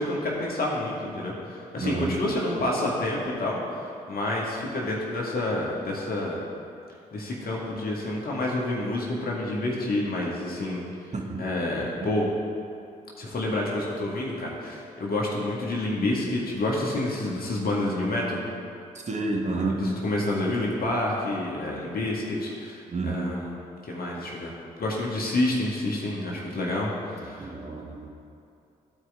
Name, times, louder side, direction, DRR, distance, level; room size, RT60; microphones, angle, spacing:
voice 1, 0.0-6.4 7.1-11.1 11.4-12.3 13.2-18.4 19.5-23.5 23.8-27.5, left 1 dB, 50° left, -3 dB, 1.9 m, -29 dB
voice 2, 1.8-2.3 11.1-11.4 12.0-12.1 19.1-19.9 22.9-23.3 27.2-28.1, right 2 dB, 35° right, 1 dB, 1.4 m, -30 dB
14.0 x 4.8 x 3.7 m, 2.6 s
hypercardioid pair, 40°, 20 cm